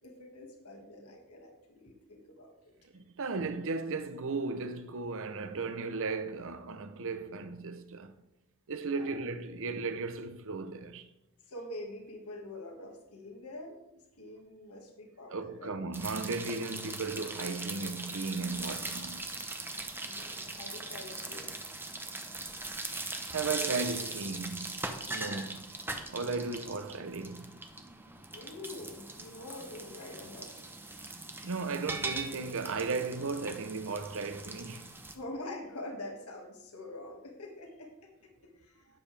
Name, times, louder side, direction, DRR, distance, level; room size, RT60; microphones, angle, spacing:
voice 1, 0.0-2.7 8.9-9.2 11.5-13.8 14.2-15.8 20.0-21.6 28.3-30.9 35.1-38.9, left 1 dB, 80° left, 1.9 m, -45 dB
voice 2, 2.9-8.1 8.7-11.1 15.3-19.4 23.3-24.8 25.1-25.8 26.1-27.5 31.4-34.9, right 4 dB, 65° right, 0.8 m, -36 dB
sound 1, 15.9-35.2, right 2 dB, 10° right, 0.8 m, -40 dB
12.0 x 8.7 x 3.4 m
head